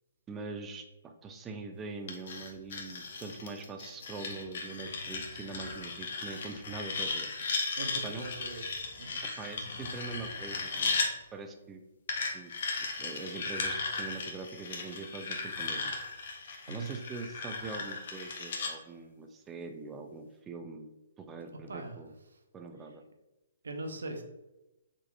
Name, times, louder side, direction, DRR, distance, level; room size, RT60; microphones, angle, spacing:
voice 1, 0.3-7.3 8.0-8.3 9.4-11.0 11.3-11.8 12.3-12.5 13.0-15.9 16.7-20.9 21.2-22.1 22.5-23.0, right 3 dB, 15° right, 5 dB, 0.4 m, -43 dB
sound 1, 2.1-11.1 12.1-18.7, left 4 dB, 55° left, 0.6 m, -36 dB
voice 2, 7.8-8.7 9.0-9.2 16.7-17.0 21.7-22.0 23.6-24.2, right 2 dB, 70° right, 4 dB, 0.5 m, -40 dB
3.7 x 2.9 x 2.3 m, 0.98 s
figure-of-eight pair, 130°, 0 cm